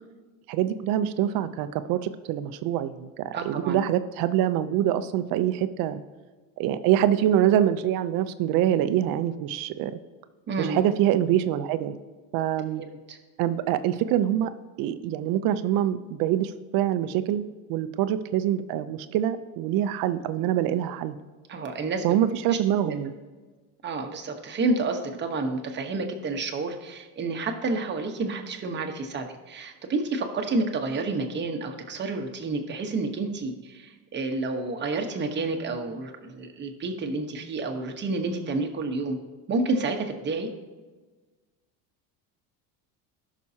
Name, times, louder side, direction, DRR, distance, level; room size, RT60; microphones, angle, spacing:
voice 1, 0.5-6.0 6.6-10.0 10.6-12.0 12.3-12.8 13.4-14.5 14.8-17.4 17.7-21.2 22.0-23.1, right 11 dB, 60° right, 12 dB, 0.7 m, -25 dB
voice 2, 3.3-3.8 10.5-10.8 12.8-13.2 21.5-22.0 22.5-22.6 22.8-22.9 23.8-39.2 39.5-40.5, right 3 dB, 25° right, 4 dB, 1.2 m, -29 dB
18.0 x 6.2 x 2.9 m, 1.3 s
cardioid pair, 145°, 39 cm